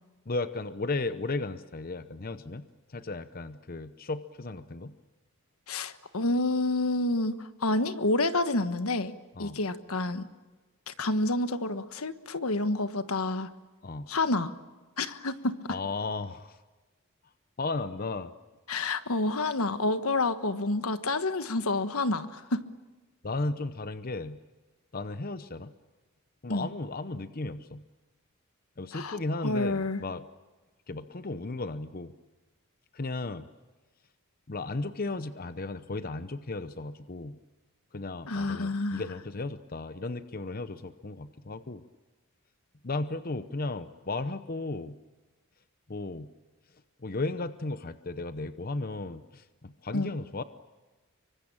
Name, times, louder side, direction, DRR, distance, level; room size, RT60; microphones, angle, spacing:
voice 1, 0.3-4.9 9.4-9.6 13.8-14.1 15.7-16.6 17.6-18.3 23.2-24.4 24.9-25.7 26.4-27.8 28.8-30.2 30.9-32.1 32.9-33.5 34.5-37.4 37.9-41.8 42.8-45.0 45.9-46.3 47.0-50.4, left 2 dB, 45° left, 12 dB, 0.8 m, -35 dB
voice 2, 5.7-9.1 9.4-10.3 10.9-13.5 14.1-14.5 15.0-15.8 18.7-22.6 26.5-26.7 28.9-30.0 38.3-39.1 49.9-50.1, left 2 dB, 85° left, 11 dB, 1.4 m, -29 dB
26.0 x 24.5 x 8.8 m, 1.2 s
head